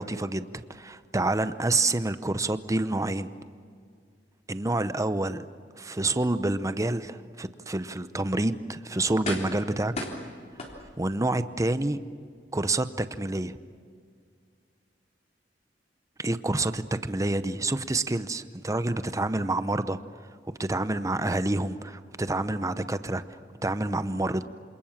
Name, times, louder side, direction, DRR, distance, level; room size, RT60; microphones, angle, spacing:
voice 1, 0.0-3.3 4.5-5.5 5.8-9.9 11.0-12.0 12.5-13.6 16.2-20.0 20.6-24.5, right 2 dB, 20° right, 12 dB, 0.8 m, -28 dB
sound 1, 9.2-9.7 10.0-11.2 11.7-11.8, left 1 dB, 40° left, 3.6 m, -35 dB
27.5 x 26.5 x 7.4 m, 2.1 s
head